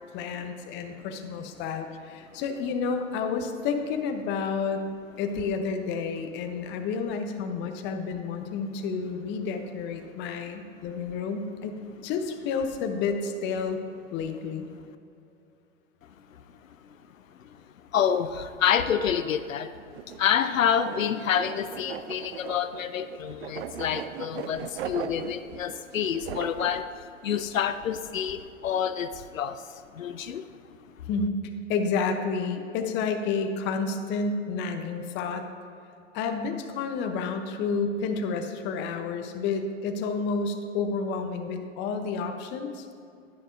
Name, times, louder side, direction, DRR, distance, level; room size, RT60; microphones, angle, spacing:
voice 1, 0.1-4.8 5.2-13.8 14.1-14.7 31.1-35.4 36.1-42.9, left 5 dB, 30° left, 6 dB, 0.7 m, -30 dB
voice 2, 17.9-30.5, left 8 dB, 85° left, 11 dB, 0.5 m, -28 dB
sound 1, 19.9-26.8, right 9 dB, 55° right, 0.5 m, -39 dB
10.5 x 9.8 x 2.6 m, 2.6 s
hypercardioid pair, 110°, 39 cm